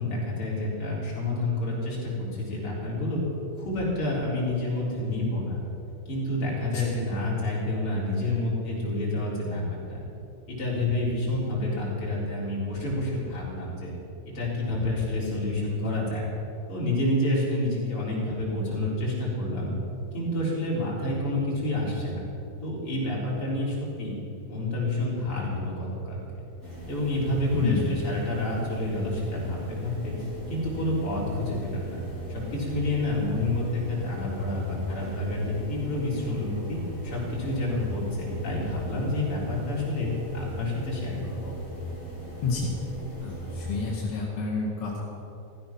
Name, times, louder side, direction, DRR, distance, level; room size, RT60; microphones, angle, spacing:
voice 1, 0.0-3.2 3.6-5.6 6.1-10.0 10.5-13.9 14.3-16.3 16.7-19.7 20.1-22.3 22.6-24.1 24.5-26.4 26.9-30.2 30.5-41.5, left 1 dB, 30° left, -5 dB, 4.3 m, -29 dB
sound 1, 26.6-44.0, equal, 15° right, 4.1 m, -38 dB
voice 2, 27.5-28.0 42.4-42.7 43.2-45.0, left 4 dB, 50° left, -4 dB, 1.8 m, -29 dB
15.5 x 15.0 x 6.0 m, 2.9 s
omnidirectional pair, 5.9 m